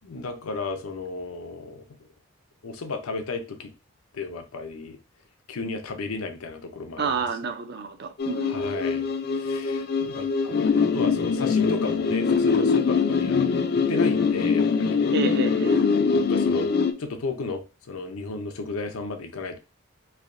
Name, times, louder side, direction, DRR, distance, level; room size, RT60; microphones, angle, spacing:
voice 1, 0.0-1.8 2.6-3.7 4.1-5.0 5.5-7.3 8.5-9.1 9.3-15.0 16.0-16.7 17.0-19.6, left 3 dB, 85° left, 0.6 m, -34 dB
voice 2, 7.0-8.6 15.1-15.8, right 4 dB, 50° right, 0.5 m, -29 dB
sound 1, 8.2-16.9, left 5 dB, 45° left, 0.3 m, -23 dB
3.3 x 2.7 x 2.5 m
head